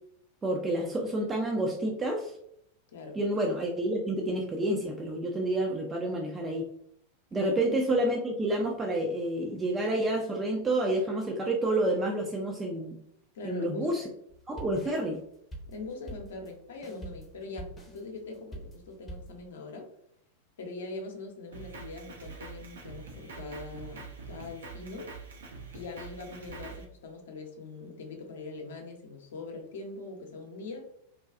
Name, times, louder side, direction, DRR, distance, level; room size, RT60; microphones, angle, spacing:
voice 1, 0.4-2.4 3.2-6.6 7.3-13.0 13.4-14.0 14.5-15.2, right 1 dB, 20° right, 0 dB, 0.4 m, -29 dB
voice 2, 7.3-7.8 13.3-13.9 14.8-14.9 15.7-19.9 20.6-25.1 25.7-30.9, left 3 dB, 60° left, 3 dB, 0.7 m, -42 dB
sound 1, 14.3-19.4, right 1 dB, 15° left, 0.7 m, -45 dB
Drum kit, 21.5-26.8, right 4 dB, 65° right, 0.5 m, -45 dB
3.6 x 2.2 x 2.4 m, 0.72 s
figure-of-eight pair, 90°, 0 cm